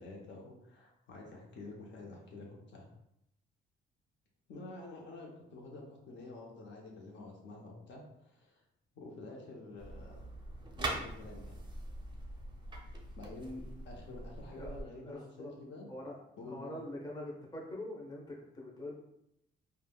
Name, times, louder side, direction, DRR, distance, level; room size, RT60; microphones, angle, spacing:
voice 1, 0.0-2.9 4.5-8.6 9.0-10.2 10.8-11.6 13.2-15.9 16.4-16.8, left 2 dB, 65° left, -1 dB, 0.7 m, -48 dB
sound 1, 9.8-14.8, right 2 dB, 25° right, 0.5 m, -43 dB
voice 2, 14.5-15.5 15.9-16.2 16.4-18.9, left 1 dB, 20° left, -2 dB, 0.8 m, -44 dB
3.4 x 2.2 x 2.2 m, 0.79 s
cardioid pair, 90°, 20 cm